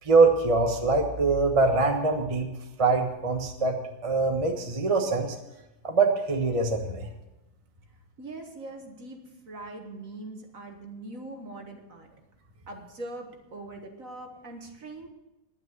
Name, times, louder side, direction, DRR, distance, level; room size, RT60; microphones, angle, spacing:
voice 1, 0.0-2.5 2.8-3.8 4.0-5.4 5.8-7.1, right 3 dB, 20° right, 3 dB, 1.1 m, -23 dB
voice 2, 8.2-12.1 12.7-15.1, right 2 dB, 45° right, 3 dB, 1.9 m, -42 dB
10.5 x 9.1 x 9.6 m, 0.96 s
omnidirectional pair, 2.0 m